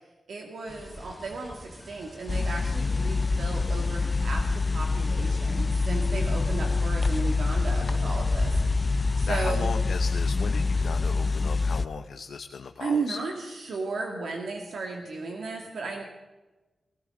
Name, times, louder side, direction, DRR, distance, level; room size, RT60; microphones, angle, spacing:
voice 1, 0.3-8.6 9.2-9.7 12.8-16.0, right 3 dB, 85° right, 0 dB, 2.1 m, -34 dB
sound 1, 0.7-11.1, left 1 dB, 5° left, 1.1 m, -38 dB
sound 2, 2.3-11.9, left 3 dB, 30° left, 0.4 m, -26 dB
voice 2, 9.0-13.2, left 6 dB, 80° left, 6 dB, 0.7 m, -37 dB
19.0 x 18.0 x 3.8 m, 1.2 s
wide cardioid pair, 155°, 0 cm